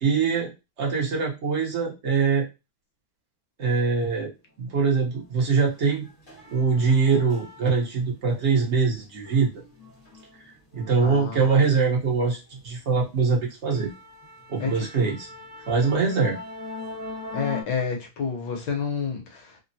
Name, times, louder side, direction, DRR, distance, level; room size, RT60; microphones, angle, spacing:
voice 1, 0.0-2.5 3.6-4.3 4.6-6.1 6.5-9.5 10.7-13.9 14.5-15.3 15.7-16.4, right 5 dB, 55° right, -2 dB, 0.7 m, -23 dB
sound 1, 5.1-5.3 5.6-8.0 8.4-12.2 12.5-12.8 13.2-13.3 13.7-17.6, left 3 dB, 40° left, 0.5 m, -41 dB
voice 2, 11.0-11.5 14.6-15.1 17.3-19.6, left 5 dB, 65° left, 1 dB, 1.3 m, -30 dB
3.7 x 2.0 x 2.6 m, 0.25 s
omnidirectional pair, 2.4 m